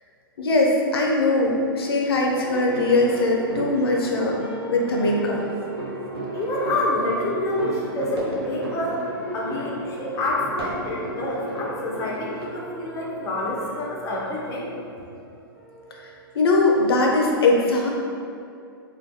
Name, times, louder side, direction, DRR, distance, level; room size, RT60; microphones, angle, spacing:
voice 1, 0.4-4.4 4.7-5.4 16.4-17.9, left 2 dB, 80° left, -1 dB, 0.4 m, -20 dB
sound 1, 1.7-17.3, equal, 60° right, 1.1 m, -38 dB
sound 2, 2.5-12.5, right 2 dB, 80° right, 0.5 m, -36 dB
voice 2, 6.3-9.0 9.3-14.7, left 1 dB, 25° left, -4 dB, 0.5 m, -27 dB
2.3 x 2.2 x 2.6 m, 2.5 s
hypercardioid pair, 120°, 13 cm